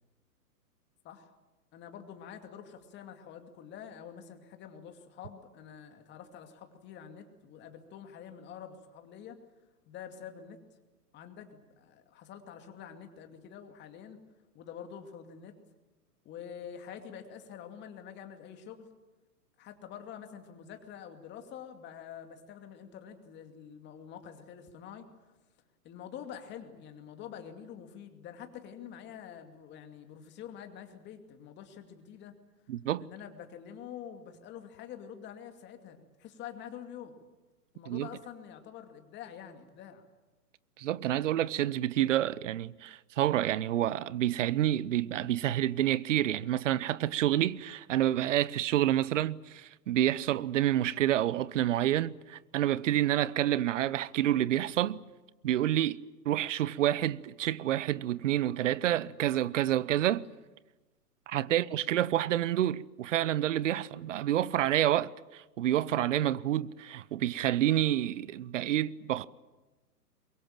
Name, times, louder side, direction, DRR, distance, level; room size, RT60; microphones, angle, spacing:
voice 1, 1.7-9.4 9.9-10.6 11.1-14.2 14.5-15.5 16.2-18.9 19.6-25.1 25.8-32.3 33.0-37.2 37.7-40.0 61.5-61.7, left 8 dB, 20° left, 2.5 m, -47 dB
voice 2, 32.7-33.1 37.9-38.1 40.8-55.0 55.4-56.0 56.2-60.3 61.3-69.2, right 12 dB, 50° right, 0.9 m, -28 dB
23.0 x 22.5 x 9.0 m
hypercardioid pair, 135°, 48 cm